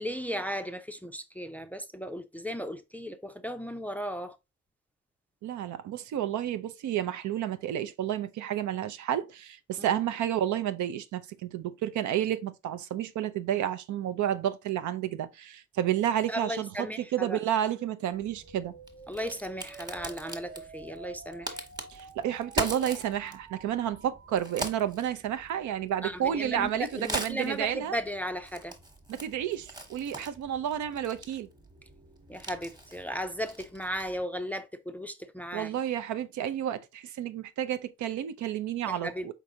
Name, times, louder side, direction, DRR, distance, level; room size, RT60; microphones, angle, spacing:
voice 1, 0.0-4.4 16.3-17.4 19.1-21.6 26.0-28.8 32.3-35.7 38.8-39.3, equal, 5° left, 0.4 m, -36 dB
voice 2, 5.4-16.7 17.1-18.7 21.9-27.9 29.1-31.5 35.5-39.3, right 10 dB, 70° right, 0.6 m, -31 dB
sound 1, 17.7-24.7, right 4 dB, 50° right, 0.9 m, -50 dB
Crack, 18.1-34.2, right 1 dB, 15° right, 1.1 m, -42 dB
4.6 x 3.8 x 2.8 m
cardioid pair, 90°, 30 cm